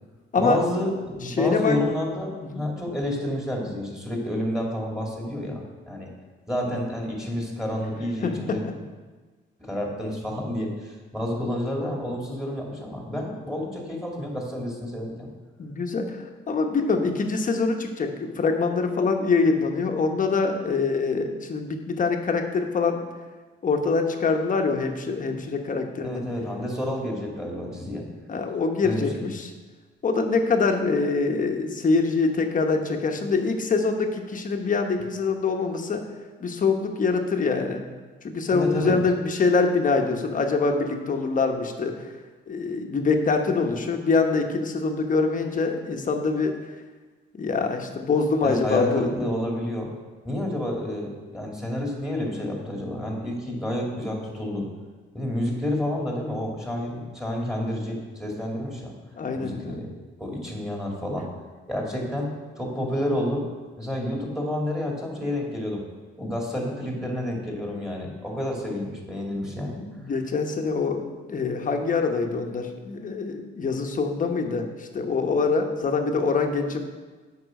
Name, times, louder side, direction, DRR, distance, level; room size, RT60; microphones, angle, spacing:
voice 1, 0.4-6.1 6.5-8.6 9.6-15.3 26.0-28.1 28.8-29.2 38.5-39.0 48.4-49.9 50.2-54.7 55.1-59.0 59.4-59.9 60.2-61.3 61.7-63.5 63.8-65.9 66.2-69.8, left 1 dB, ahead, -1 dB, 2.5 m, -29 dB
voice 2, 1.2-1.8 2.5-2.6 8.2-8.3 15.6-23.0 23.6-26.2 28.3-29.5 30.0-36.0 36.4-37.8 38.2-42.1 42.5-46.5 47.3-49.1 50.4-50.5 59.2-59.8 69.8-76.8, left 4 dB, 40° left, 4 dB, 1.1 m, -24 dB
8.0 x 5.4 x 6.4 m, 1.3 s
cardioid pair, 90°, 20 cm